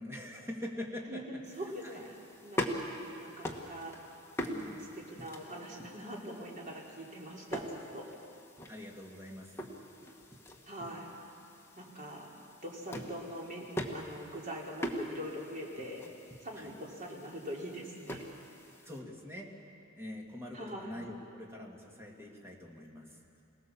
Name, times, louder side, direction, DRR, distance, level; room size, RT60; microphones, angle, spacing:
voice 1, 0.0-1.2 1.8-2.1 4.5-4.9 8.7-9.5 16.6-16.7 18.8-19.5 20.0-23.2, left 1 dB, 10° right, -1 dB, 2.6 m, -44 dB
voice 2, 1.1-4.1 4.4-8.1 10.7-11.1 11.8-12.3 12.6-13.7 13.9-16.0 16.4-18.2 20.5-21.0, equal, 40° right, -3 dB, 3.7 m, -43 dB
sound 1, 1.4-19.0, equal, 10° left, 1.7 m, -43 dB
26.5 x 18.0 x 7.2 m, 2.7 s
head